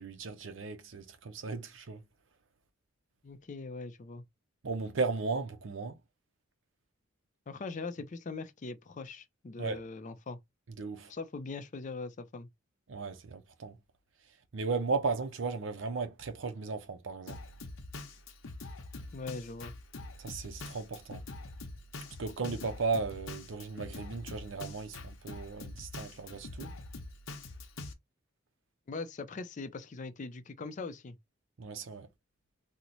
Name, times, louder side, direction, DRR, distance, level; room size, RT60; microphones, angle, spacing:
voice 1, 0.0-2.0 4.6-6.0 9.6-9.8 10.8-11.1 12.9-13.8 14.5-17.4 20.2-21.2 22.2-26.8 31.6-32.1, right 4 dB, 70° right, 0.6 m, -36 dB
voice 2, 3.2-4.2 7.5-10.4 11.1-12.5 19.1-19.7 28.9-31.2, left 3 dB, 40° left, 0.4 m, -41 dB
Drum kit, 17.3-27.9, left 2 dB, 85° left, 0.8 m, -45 dB
3.0 x 2.1 x 3.9 m
head